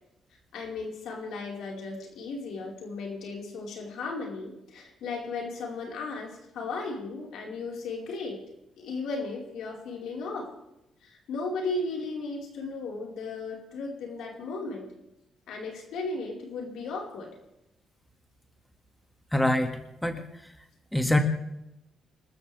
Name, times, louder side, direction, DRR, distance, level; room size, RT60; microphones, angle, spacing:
voice 1, 0.5-8.4 8.8-10.5 11.0-14.9 15.5-17.3, left 3 dB, 75° left, -1 dB, 4.8 m, -35 dB
voice 2, 19.3-20.5 20.9-21.2, left 1 dB, 5° left, 5 dB, 2.2 m, -26 dB
27.5 x 13.5 x 3.5 m, 0.88 s
cardioid pair, 80°, 0 cm